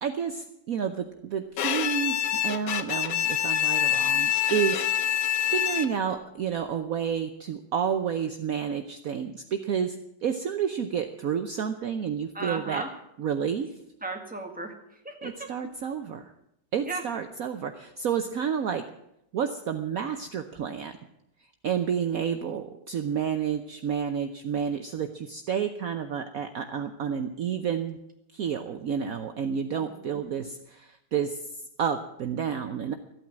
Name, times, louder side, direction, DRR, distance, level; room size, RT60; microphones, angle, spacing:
voice 1, 0.0-4.8 5.5-12.8 13.2-13.7 15.2-16.3 16.7-18.8 19.3-21.0 21.6-28.0 28.3-31.5 31.8-32.9, right 7 dB, 60° right, 7 dB, 1.1 m, -30 dB
Bowed string instrument, 1.6-6.2, left 10 dB, 60° left, 1.1 m, -26 dB
voice 2, 12.3-12.9 14.0-15.5 16.8-17.1 29.8-30.2, right 2 dB, 5° right, 3 dB, 1.9 m, -36 dB
14.0 x 9.0 x 8.6 m, 0.79 s
omnidirectional pair, 1.9 m